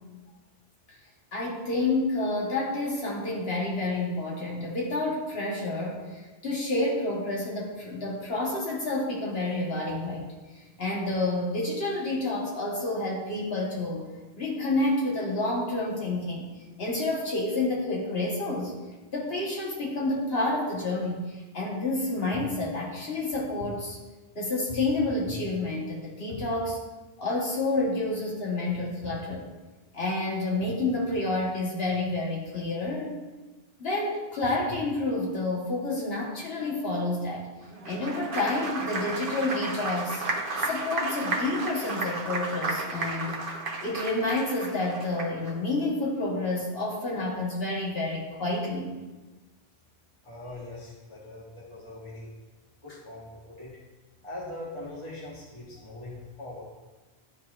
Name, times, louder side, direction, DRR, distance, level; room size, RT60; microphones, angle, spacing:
voice 1, 1.3-14.1 14.4-16.5 16.8-18.7 19.1-24.0 24.3-26.8 27.2-29.4 29.9-33.2 33.8-37.5 37.8-40.2 40.6-43.4 43.8-48.9, left 2 dB, 70° left, -4 dB, 1.5 m, -29 dB
Applause, 37.7-45.5, right 2 dB, 60° right, 1.0 m, -33 dB
voice 2, 50.2-52.3 52.8-53.7 54.2-56.6, left 2 dB, 30° left, -6 dB, 1.3 m, -41 dB
11.0 x 4.0 x 2.4 m, 1.2 s
omnidirectional pair, 1.0 m